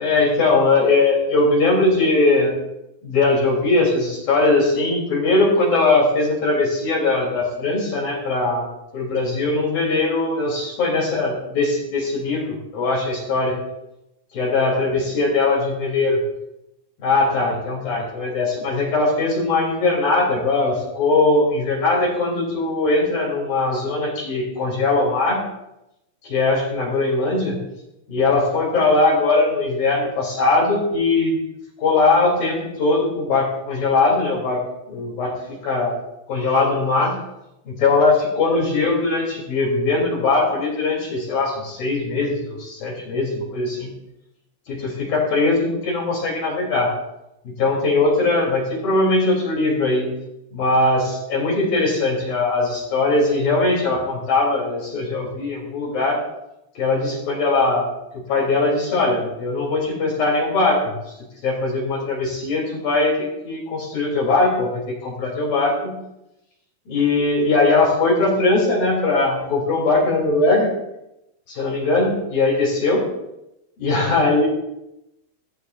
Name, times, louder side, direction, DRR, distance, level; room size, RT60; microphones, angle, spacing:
voice 1, 0.0-2.6 3.0-8.7 8.9-13.5 14.3-16.2 17.0-25.4 26.2-27.6 28.1-31.4 31.8-34.6 34.9-35.3 35.6-35.9 36.3-37.2 37.6-43.9 44.7-46.9 47.4-50.1 50.5-56.2 56.7-57.9 58.1-60.8 61.4-66.0 66.9-70.7 71.5-73.0 73.8-74.5, left 3 dB, 55° left, -5 dB, 4.9 m, -20 dB
17.5 x 17.5 x 2.6 m, 0.88 s
omnidirectional pair, 4.8 m